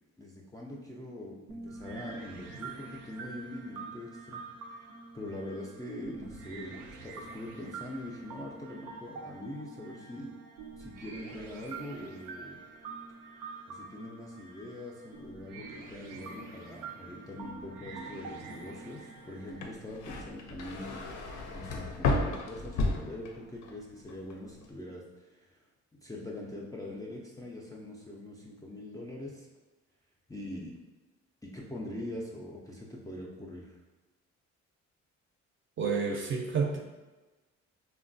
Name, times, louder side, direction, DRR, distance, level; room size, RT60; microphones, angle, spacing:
voice 1, 0.2-4.4 5.1-10.3 10.8-12.6 13.7-21.0 21.5-25.6 25.9-29.5 30.3-30.7 31.4-33.8, left 1 dB, 10° left, -3 dB, 0.3 m, -43 dB
sound 1, 1.5-19.7, right 4 dB, 85° right, 0.5 m, -46 dB
sound 2, 19.5-23.8 24.1-24.6, left 2 dB, 75° left, 0.5 m, -33 dB
voice 2, 35.8-36.8, right 5 dB, 40° right, 1 dB, 0.5 m, -29 dB
3.1 x 2.2 x 2.5 m, 1.2 s
cardioid pair, 90°, 30 cm